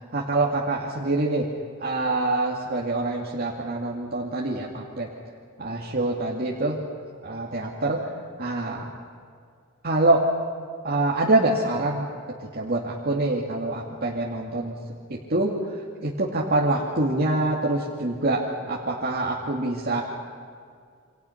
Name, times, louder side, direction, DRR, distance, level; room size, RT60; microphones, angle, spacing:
voice 1, 0.1-1.5 1.8-5.1 5.6-6.8 7.2-8.0 8.4-8.9 9.8-10.2 10.8-12.1 12.4-14.8 15.1-15.8 16.0-18.4 18.7-20.0, right 2 dB, 45° right, -4 dB, 2.3 m, -25 dB
28.5 x 26.0 x 5.9 m, 2.2 s
head